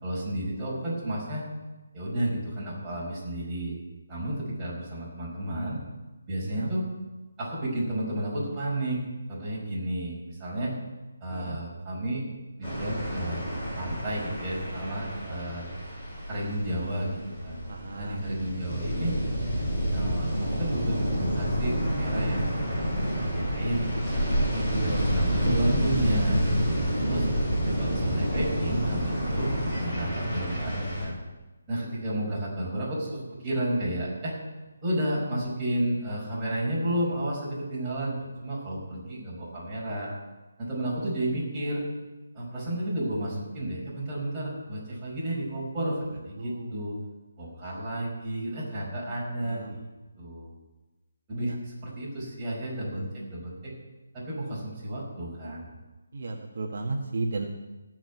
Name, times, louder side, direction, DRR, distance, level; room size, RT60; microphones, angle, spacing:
voice 1, 0.0-1.5 1.9-3.8 4.1-5.8 6.3-6.8 7.4-9.0 9.3-10.7 11.2-12.2 12.6-13.5 13.7-15.6 16.3-17.6 18.0-19.1 19.9-24.2 24.8-26.4 27.0-27.3 27.7-31.2 31.7-34.4 34.8-40.1 40.6-41.8 42.3-47.0 47.4-49.9 50.2-50.5 51.3-53.7 54.1-55.7, right 1 dB, 10° right, -8 dB, 5.2 m, -32 dB
sound 1, 12.6-31.0, equal, 10° left, 6.3 m, -29 dB
voice 2, 17.7-18.2 24.7-25.1 45.8-46.0 46.4-46.7 49.4-49.8 56.1-57.5, right 3 dB, 55° right, 1 dB, 1.4 m, -34 dB
15.0 x 6.1 x 9.6 m, 1.1 s
hypercardioid pair, 170°, 0 cm